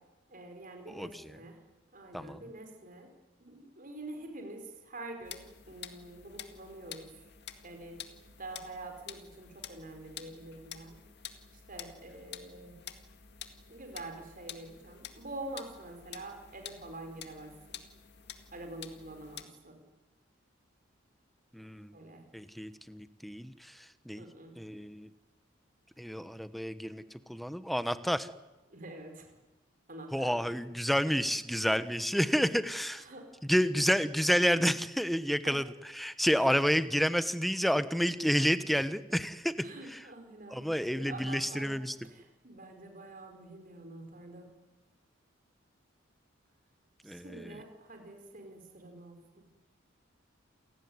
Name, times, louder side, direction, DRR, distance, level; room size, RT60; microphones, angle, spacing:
voice 1, 0.3-1.6 1.9-3.1 3.4-7.1 7.6-8.0 8.4-11.0 11.7-12.7 13.7-17.5 18.5-19.8 21.9-22.2 24.2-24.5 28.7-29.3 29.9-30.7 31.1-31.2 33.0-33.2 33.6-33.9 35.4-35.5 36.3-36.7 39.6-41.7 42.1-44.5 47.0-49.4, right 2 dB, 45° right, 4 dB, 5.1 m, -46 dB
voice 2, 0.9-1.4 2.1-2.4 21.5-22.0 22.3-24.2 24.6-25.1 26.0-27.0 27.3-28.3 30.1-33.0 33.4-39.5 39.9-40.0 40.5-42.1 47.0-47.6, equal, ahead, 12 dB, 1.1 m, -30 dB
sound 1, 5.2-19.4, left 9 dB, 55° left, 2.0 m, -49 dB
28.5 x 17.5 x 9.7 m, 1.1 s
head